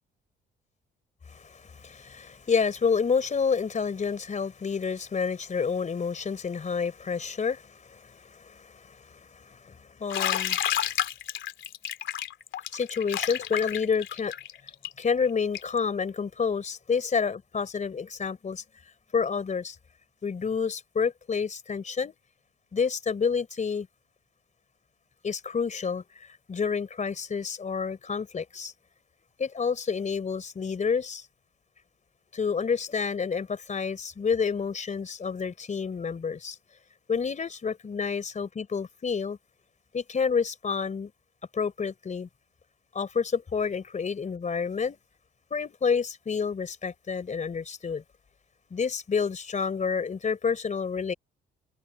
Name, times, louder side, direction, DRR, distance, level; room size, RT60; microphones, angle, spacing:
voice 1, 1.3-10.6 12.7-14.3 15.0-18.6 19.1-19.8 20.2-22.1 22.7-23.9 25.2-26.0 26.5-28.7 29.4-31.2 32.3-36.6 37.1-39.4 39.9-41.1 41.5-42.3 42.9-45.0 45.5-48.0 48.7-51.1, left 5 dB, 40° left, 3.8 m, -29 dB
Bathtub (filling or washing), 10.1-15.8, left 10 dB, 70° left, 3.1 m, -30 dB
cardioid pair, 90°, 20 cm